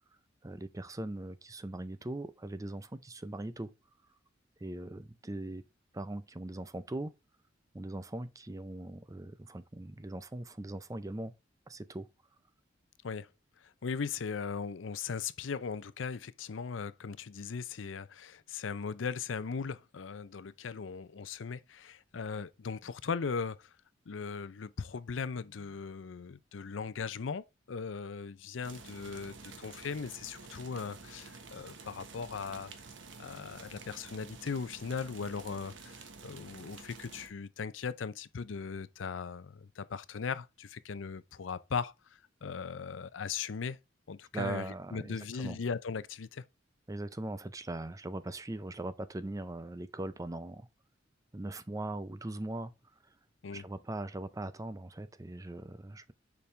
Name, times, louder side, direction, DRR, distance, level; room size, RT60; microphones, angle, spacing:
voice 1, 0.4-3.7 4.6-5.6 5.9-7.1 7.7-11.3 11.7-12.1 44.3-45.6 46.9-50.7 51.3-52.7 53.5-56.1, right 2 dB, 20° right, 0.5 m, -40 dB
voice 2, 13.6-23.7 24.1-32.7 33.2-43.8 44.1-46.4 53.4-53.7, left 5 dB, 90° left, 0.5 m, -38 dB
sound 1, 28.6-37.3, right 4 dB, 80° right, 1.3 m, -50 dB
6.9 x 5.3 x 3.2 m
head